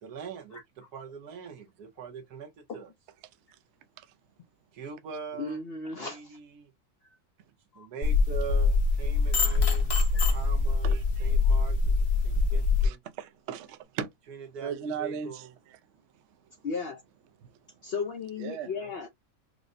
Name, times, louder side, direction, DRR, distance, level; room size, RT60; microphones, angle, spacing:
voice 1, 0.0-2.9 4.7-5.6 6.0-6.7 7.7-13.0 14.3-15.5 18.7-18.9, right 6 dB, 90° right, 1.4 m, -43 dB
voice 2, 5.4-6.2 7.0-7.2 7.7-7.9 10.1-10.3 16.6-17.0 17.8-19.1, left 4 dB, 65° left, 0.6 m, -35 dB
sound 1, 8.0-12.9, left 4 dB, 50° left, 1.0 m, -24 dB
voice 3, 10.8-11.3 12.8-14.1 14.6-15.4 18.4-18.7, right 7 dB, 70° right, 0.7 m, -37 dB
4.8 x 2.0 x 2.5 m
omnidirectional pair, 1.6 m